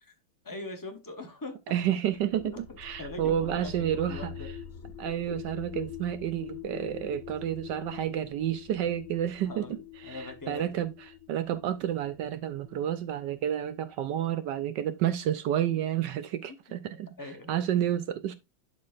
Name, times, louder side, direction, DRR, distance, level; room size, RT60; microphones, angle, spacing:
voice 1, 0.4-1.6 2.4-4.5 5.3-5.4 9.5-10.8 17.2-17.6, left 2 dB, 20° left, 0.5 m, -42 dB
voice 2, 1.7-4.3 5.0-10.9 11.3-17.1 17.5-18.3, right 11 dB, 75° right, 1.1 m, -30 dB
sound 1, 2.1-13.9, left 9 dB, 65° left, 0.8 m, -45 dB
11.5 x 4.6 x 2.5 m
omnidirectional pair, 2.2 m